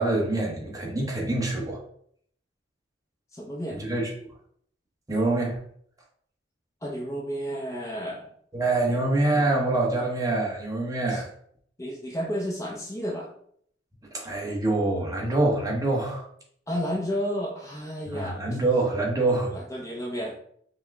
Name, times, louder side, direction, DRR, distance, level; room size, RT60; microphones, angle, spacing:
voice 1, 0.0-1.8 3.9-4.0 5.1-5.6 8.5-11.3 14.1-16.3 18.1-19.5, right 2 dB, 20° right, -1 dB, 0.9 m, -25 dB
voice 2, 3.3-3.8 6.8-8.3 8.9-9.0 11.1-11.2 11.8-13.3 16.7-18.4 19.5-20.4, equal, 15° left, -2 dB, 0.6 m, -32 dB
5.4 x 2.2 x 3.4 m, 0.64 s
head